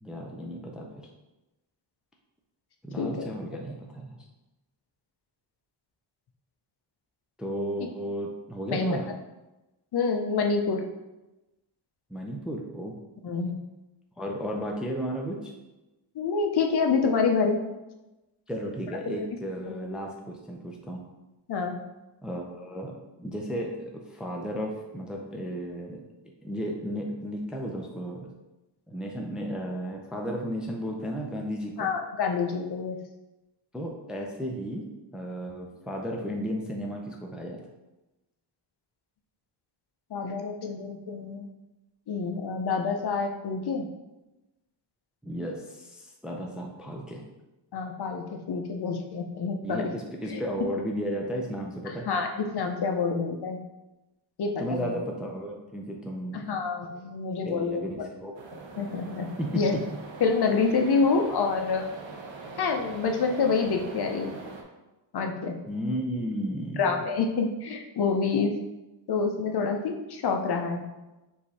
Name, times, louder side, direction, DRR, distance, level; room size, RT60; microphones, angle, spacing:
voice 1, 0.0-1.1 2.8-4.2 7.4-9.1 12.1-13.0 14.2-15.5 18.5-21.0 22.2-26.0 26.4-28.3 28.9-31.9 33.7-37.6 45.2-47.3 49.6-52.1 54.6-56.6 57.4-58.4 59.4-59.8 65.7-67.1, equal, ahead, 0 dB, 0.4 m, -34 dB
voice 2, 9.9-10.8 13.2-13.5 16.2-17.6 19.1-19.2 19.7-19.8 21.5-21.8 31.8-33.0 40.1-41.5 42.1-43.9 47.7-49.9 50.3-50.4 52.1-53.6 54.4-54.9 56.3-57.8 58.8-59.3 59.6-59.7 60.2-61.9 62.6-64.3 65.1-65.6 66.8-68.5 69.1-70.8, left 4 dB, 55° left, 3 dB, 0.6 m, -27 dB
sound 1, 58.3-64.6, right 3 dB, 75° right, 0.8 m, -42 dB
4.8 x 2.7 x 4.1 m, 1.0 s
wide cardioid pair, 140°, 46 cm